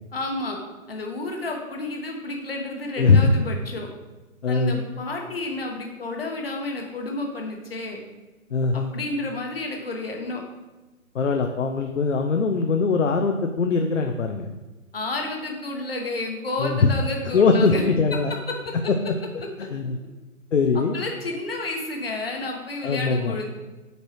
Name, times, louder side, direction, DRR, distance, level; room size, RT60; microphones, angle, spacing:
voice 1, 0.1-3.9 4.5-8.0 8.7-10.4 14.9-17.8 18.1-18.9 20.7-23.5, left 2 dB, 45° left, 1 dB, 1.2 m, -31 dB
voice 2, 3.0-3.3 4.4-4.8 8.5-8.9 11.1-14.5 16.6-16.9 17.3-18.3 19.1-19.2 19.6-20.0 20.5-20.9 22.8-23.3, left 4 dB, 60° left, 4 dB, 0.6 m, -21 dB
8.1 x 4.5 x 3.0 m, 1.2 s
hypercardioid pair, 175°, 42 cm